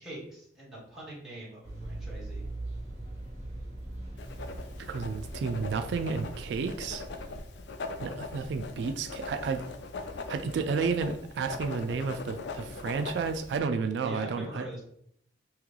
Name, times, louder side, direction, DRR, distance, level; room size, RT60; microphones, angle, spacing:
voice 1, 0.0-2.4 14.0-14.8, right 1 dB, ahead, -8 dB, 1.5 m, -43 dB
sound 1, 1.6-7.4, right 1 dB, 40° right, 1.2 m, -41 dB
Writing, 4.2-13.6, left 3 dB, 75° left, 0.4 m, -41 dB
voice 2, 4.8-7.0 8.0-9.6 10.3-14.7, right 5 dB, 75° right, 8 dB, 0.3 m, -31 dB
3.1 x 2.9 x 3.7 m, 0.68 s
head